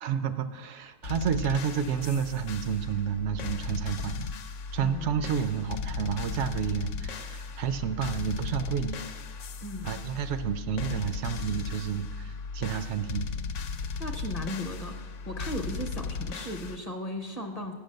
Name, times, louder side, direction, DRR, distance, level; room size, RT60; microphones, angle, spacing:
voice 1, 0.0-4.3 4.7-9.0 9.8-13.3, right 8 dB, 75° right, 11 dB, 0.9 m, -30 dB
sound 1, 1.0-16.8, left 5 dB, 85° left, 0.9 m, -36 dB
voice 2, 4.8-5.3 9.6-10.0 14.0-17.7, equal, 35° left, 4 dB, 0.8 m, -36 dB
8.3 x 6.3 x 6.5 m, 1.3 s
omnidirectional pair, 1.2 m